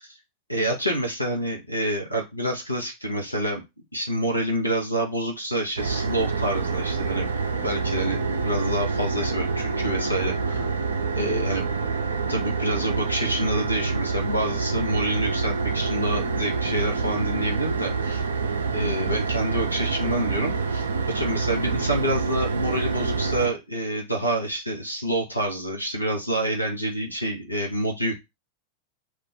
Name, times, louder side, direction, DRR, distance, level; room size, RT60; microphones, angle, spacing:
voice 1, 0.5-3.6 3.9-10.7 11.1-11.6 12.3-18.2 18.7-28.1, right 1 dB, 85° left, 2 dB, 0.7 m, -27 dB
sound 1, 5.8-23.5, right 4 dB, 70° right, 0.4 m, -27 dB
2.4 x 2.1 x 3.9 m, 0.22 s
figure-of-eight pair, 90°, 0 cm